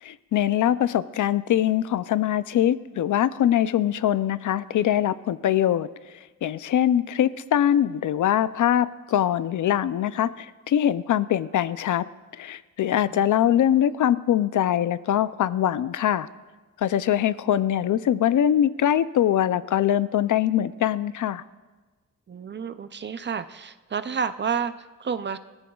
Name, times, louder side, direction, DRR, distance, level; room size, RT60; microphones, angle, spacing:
voice 1, 0.0-5.9 6.4-12.0 12.4-16.3 16.8-21.4, left 11 dB, 65° left, 15 dB, 0.5 m, -23 dB
voice 2, 22.3-25.4, right 6 dB, 35° right, 12 dB, 0.4 m, -30 dB
21.5 x 14.0 x 2.3 m, 1.3 s
wide cardioid pair, 150°, 33 cm